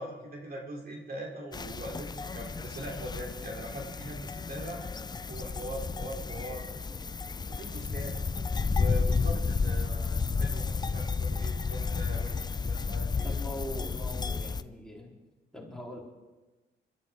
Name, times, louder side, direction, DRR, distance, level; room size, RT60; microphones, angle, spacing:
voice 1, 0.0-4.8 5.3-6.7 7.5-8.2 8.7-13.4, right 1 dB, 50° right, 0 dB, 3.0 m, -41 dB
sound 1, 1.5-14.6, left 4 dB, 20° left, 0.5 m, -32 dB
voice 2, 13.2-15.1 15.5-16.0, left 1 dB, 5° left, -3 dB, 3.3 m, -41 dB
23.5 x 12.5 x 3.5 m, 1.2 s
cardioid pair, 90°, 20 cm